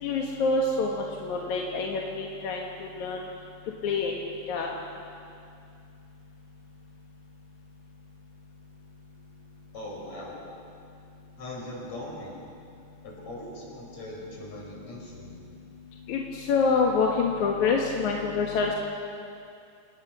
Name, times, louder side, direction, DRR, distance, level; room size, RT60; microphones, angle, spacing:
voice 1, 0.0-3.3 3.8-4.7 16.1-18.7, left 4 dB, 60° left, 0 dB, 2.3 m, -27 dB
voice 2, 9.7-10.4 11.4-12.4 13.0-15.5, left 1 dB, 40° left, -3 dB, 6.5 m, -40 dB
28.5 x 18.5 x 6.2 m, 2.5 s
omnidirectional pair, 5.0 m